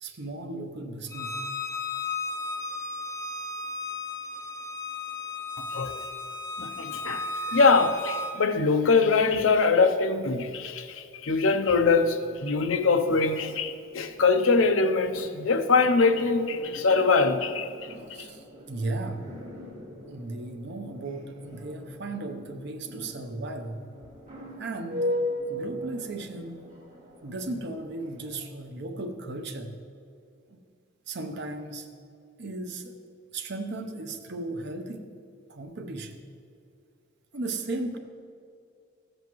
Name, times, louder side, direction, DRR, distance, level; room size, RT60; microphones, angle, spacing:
voice 1, 0.0-1.4 18.1-19.4 20.1-23.8 24.6-25.1 25.5-26.7 27.2-29.7 30.5-30.6 31.1-31.9 32.4-33.0 33.3-35.1 35.5-36.3 37.3-38.0, right 2 dB, 60° right, 0.8 m, -36 dB
Bowed string instrument, 1.1-8.3, left 2 dB, 15° left, 0.5 m, -34 dB
voice 2, 5.6-6.0 6.6-17.7 18.2-18.3, left 4 dB, 80° left, 0.6 m, -23 dB
sound 1, 11.8-28.5, left 1 dB, 40° right, 1.7 m, -39 dB
14.0 x 7.9 x 3.1 m
head